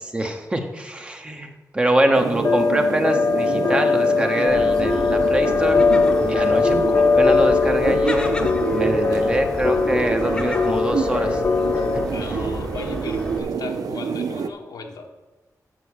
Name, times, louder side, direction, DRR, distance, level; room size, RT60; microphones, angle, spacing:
voice 1, 0.1-5.9 6.2-11.4 11.9-12.0, right 1 dB, 15° right, 5 dB, 0.8 m, -24 dB
sound 1, 2.1-14.5, right 6 dB, 80° right, 0.6 m, -28 dB
sound 2, 2.4-12.0, left 4 dB, 40° left, 0.5 m, -20 dB
Gull seagull, 4.5-13.4, left 2 dB, 15° left, 0.8 m, -33 dB
voice 2, 12.1-15.1, left 4 dB, 90° left, 3 dB, 1.2 m, -36 dB
7.6 x 7.0 x 6.3 m, 1.2 s
wide cardioid pair, 165°, 6 cm